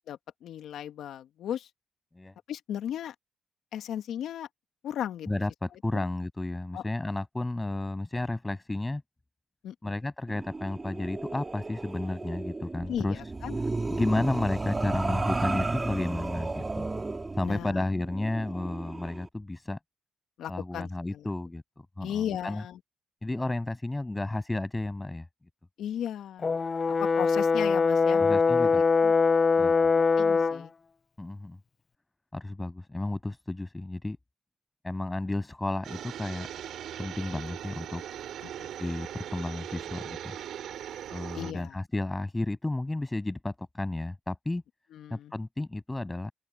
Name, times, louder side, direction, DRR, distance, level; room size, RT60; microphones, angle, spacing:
voice 1, 0.1-1.7 2.5-3.1 3.7-4.5 4.8-5.3 5.9-6.0 6.7-6.8 9.6-9.9 12.9-13.6 17.4-17.8 20.4-21.2 22.0-22.8 25.8-26.5 27.0-28.2 28.6-29.1 29.9-30.7 38.4-38.7 41.3-41.8 44.9-45.3, left 10 dB, 75° left, 2.0 m, -36 dB
voice 2, 5.3-9.0 9.8-13.2 13.9-16.9 17.3-19.8 20.5-21.6 22.0-22.6 23.2-25.3 28.2-28.8 29.6-29.9 31.2-31.6 32.3-34.2 34.8-36.5 37.0-38.0 38.7-40.4 41.1-44.6 45.1-46.3, left 2 dB, 15° left, 7.6 m, -32 dB
sound 1, 10.3-19.2, right 3 dB, 20° right, 4.5 m, -34 dB
Brass instrument, 26.4-30.6, left 4 dB, 35° left, 0.7 m, -23 dB
sound 2, 35.8-41.5, right 10 dB, 75° right, 3.3 m, -40 dB
open air
cardioid pair, 90°, 0 cm